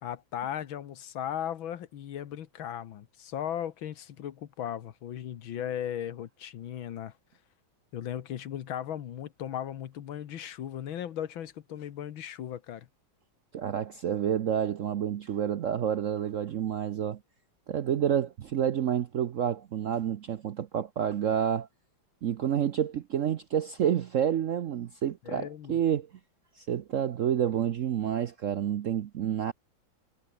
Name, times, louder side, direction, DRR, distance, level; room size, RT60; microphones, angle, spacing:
voice 1, 0.0-7.1 7.9-12.9 25.3-25.8, left 10 dB, 80° left, 2.0 m, -37 dB
voice 2, 13.5-17.2 17.7-21.7 22.2-26.1 26.6-29.5, right 9 dB, 70° right, 0.7 m, -29 dB
omnidirectional pair, 2.2 m